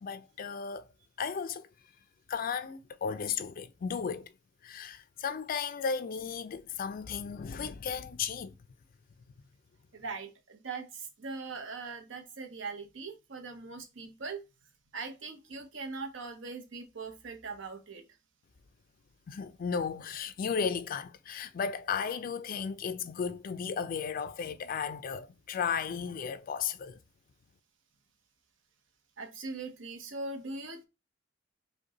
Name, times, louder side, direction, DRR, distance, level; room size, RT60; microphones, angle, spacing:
voice 1, 0.0-0.9 1.2-1.7 2.3-4.3 4.6-8.5 19.3-27.0, left 6 dB, 50° left, 0.3 m, -35 dB
voice 2, 9.9-14.4 14.9-18.0 29.2-30.9, right 4 dB, 75° right, 0.8 m, -41 dB
5.0 x 2.2 x 2.8 m
head